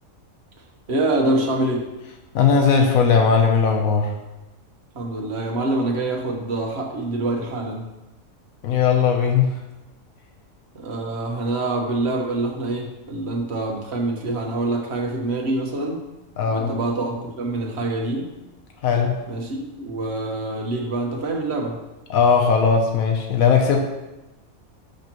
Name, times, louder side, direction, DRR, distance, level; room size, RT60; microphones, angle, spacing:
voice 1, 0.9-1.9 4.9-7.9 10.7-16.0 16.5-18.3 19.3-21.8, right 2 dB, 50° right, 0 dB, 1.5 m, -25 dB
voice 2, 2.3-4.1 8.6-9.5 16.4-16.7 18.8-19.2 22.1-23.8, left 6 dB, 85° left, 3 dB, 1.2 m, -18 dB
11.5 x 5.8 x 3.0 m, 1.0 s
omnidirectional pair, 1.4 m